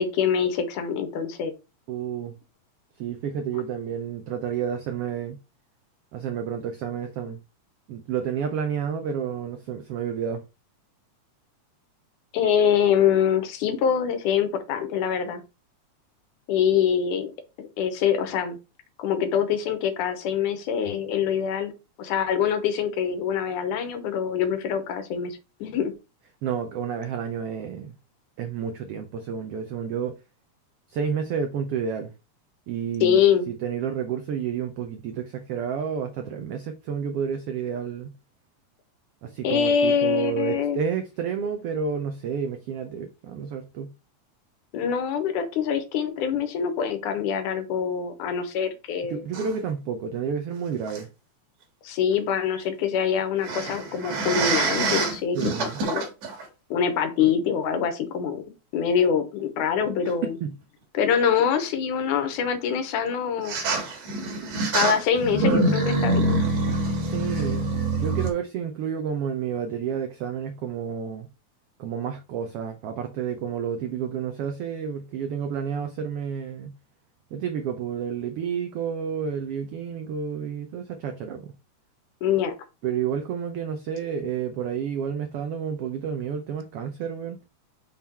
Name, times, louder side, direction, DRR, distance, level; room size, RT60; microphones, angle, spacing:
voice 1, 0.0-1.5 12.3-15.4 16.5-17.3 17.6-18.6 19.0-21.7 22.0-25.9 33.0-33.5 39.4-40.8 44.7-49.2 51.8-56.0 56.7-58.4 58.7-60.4 60.9-63.6 64.7-66.4 82.2-82.5, left 7 dB, 90° left, 2.4 m, -24 dB
voice 2, 1.9-2.3 3.0-5.4 6.1-7.4 7.9-10.4 26.4-27.9 28.4-30.2 30.9-32.1 32.7-33.2 33.5-38.1 39.2-43.9 49.1-51.1 55.3-55.8 60.4-60.6 67.0-71.3 71.8-76.7 77.3-81.5 82.8-87.4, right 7 dB, 90° right, 1.3 m, -30 dB
sound 1, 49.3-49.6 50.9-51.0 53.4-56.5 57.2-57.3 60.1-60.2 63.4-68.3, right 2 dB, 60° right, 2.5 m, -25 dB
5.9 x 3.7 x 4.4 m
omnidirectional pair, 3.5 m